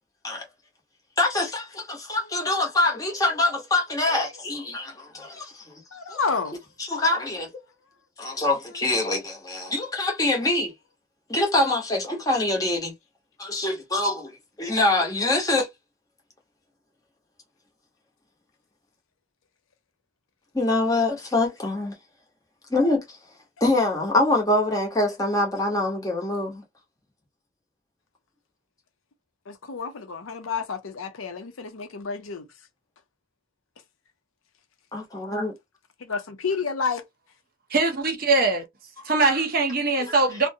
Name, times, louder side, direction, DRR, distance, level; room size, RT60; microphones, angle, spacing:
voice 1, 1.2-5.7 6.1-6.2 6.8-7.5 8.2-10.7 11.3-12.9 13.4-14.3 14.6-15.7 20.5-21.9 22.7-23.2 23.6-26.6 34.9-35.5 39.0-39.4 40.1-40.4, left 2 dB, 15° left, 0.9 m, -24 dB
voice 2, 5.9-6.6 29.5-32.5 36.0-37.0, left 5 dB, 75° left, 0.6 m, -30 dB
voice 3, 37.7-38.6 39.1-40.5, right 3 dB, 45° right, 0.7 m, -22 dB
2.6 x 2.1 x 2.6 m
head